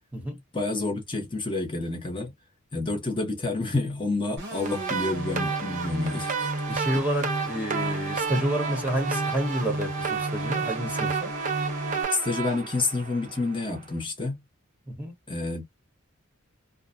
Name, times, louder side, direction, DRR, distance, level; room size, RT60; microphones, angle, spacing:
voice 1, 0.5-2.3 2.7-6.5 6.9-7.0 12.1-14.4 15.3-15.6, left 2 dB, 25° left, 0.7 m, -29 dB
sound 1, 4.4-12.0, right 1 dB, 60° right, 1.0 m, -33 dB
sound 2, 4.6-13.7, right 6 dB, 35° right, 0.5 m, -32 dB
voice 2, 6.7-11.3 14.9-15.1, right 1 dB, 5° right, 0.9 m, -29 dB
2.5 x 2.0 x 2.5 m
head